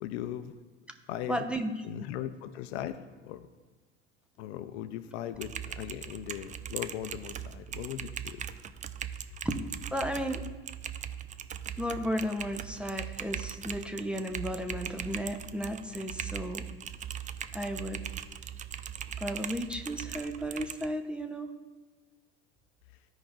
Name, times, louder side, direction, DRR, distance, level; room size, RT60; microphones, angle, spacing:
voice 1, 0.0-0.5 1.1-1.4 1.8-3.0 3.2-3.5 4.4-8.4, left 11 dB, 65° left, 11 dB, 0.6 m, -38 dB
voice 2, 1.3-1.7 9.4-9.6 9.9-10.4 11.8-16.7 17.5-18.0 19.2-21.5, equal, 5° right, 6 dB, 0.8 m, -34 dB
Typing, 5.3-20.9, right 9 dB, 20° right, 0.4 m, -40 dB
15.0 x 5.1 x 2.5 m, 1.3 s
hypercardioid pair, 70°, 35 cm